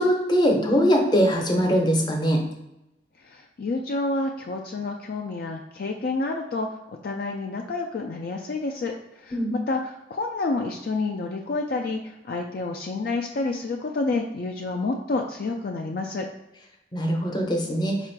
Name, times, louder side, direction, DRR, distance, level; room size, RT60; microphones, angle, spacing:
voice 1, 0.0-2.4 9.3-9.5 16.9-17.9, equal, 25° left, 1 dB, 0.7 m, -21 dB
voice 2, 3.3-6.7 7.0-8.9 9.2-16.3, left 3 dB, 50° left, 2 dB, 0.3 m, -29 dB
4.4 x 2.5 x 4.5 m, 0.92 s
head